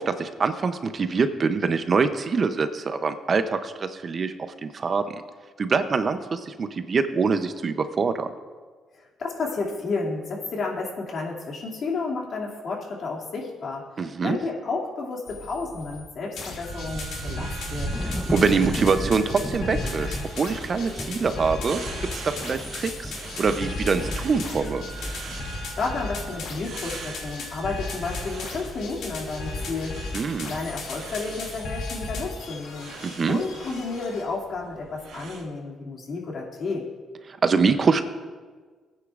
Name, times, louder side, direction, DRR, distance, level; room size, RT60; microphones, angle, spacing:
voice 1, 0.0-4.3 4.6-5.0 5.6-8.3 14.0-14.4 18.1-21.8 22.2-23.1 23.4-24.8 30.1-30.5 33.0-33.4 37.4-38.0, right 5 dB, 45° right, 10 dB, 0.6 m, -24 dB
voice 2, 8.9-17.9 25.4-32.9 33.3-36.9, left 3 dB, 55° left, -2 dB, 2.5 m, -32 dB
sound 1, 15.3-16.0 16.3-34.2, left 3 dB, 85° left, 2.5 m, -36 dB
sound 2, 16.6-35.4, right 3 dB, 80° right, 2.1 m, -40 dB
Thunder / Rain, 17.9-33.5, equal, 10° left, 0.7 m, -38 dB
18.0 x 9.5 x 2.5 m, 1.5 s
cardioid pair, 90°, 0 cm